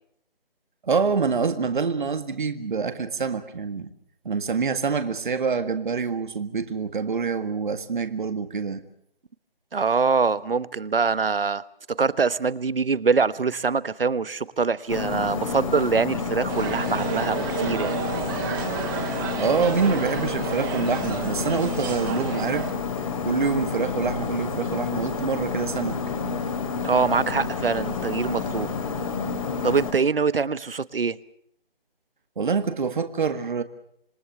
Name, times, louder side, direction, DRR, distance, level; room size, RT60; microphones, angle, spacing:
voice 1, 0.8-3.9 4.3-8.8 19.4-22.7 23.2-26.0 32.4-33.6, right 5 dB, 55° right, 1.8 m, -26 dB
voice 2, 9.7-11.6 12.0-18.0 26.8-28.7 29.6-31.2, right 5 dB, 70° right, 1.1 m, -24 dB
sound 1, 14.9-29.9, left 5 dB, 35° left, 2.9 m, -29 dB
sound 2, 16.5-22.7, right 8 dB, 20° right, 2.8 m, -32 dB
27.5 x 20.5 x 6.7 m
figure-of-eight pair, 150°, 29 cm